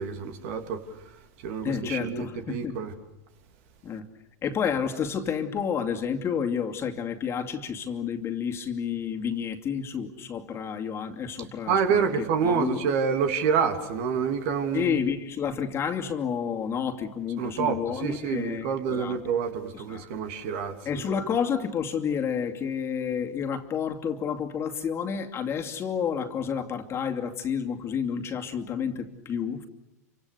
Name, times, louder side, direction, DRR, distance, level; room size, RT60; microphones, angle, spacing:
voice 1, 0.0-2.9 11.7-15.0 17.4-21.1, right 6 dB, 55° right, 6 dB, 3.0 m, -28 dB
voice 2, 1.6-2.8 3.8-4.1 4.4-12.8 14.7-19.2 19.7-20.1 20.8-29.7, left 7 dB, 30° left, 4 dB, 2.6 m, -30 dB
29.0 x 25.5 x 6.9 m, 0.89 s
hypercardioid pair, 95°, 9 cm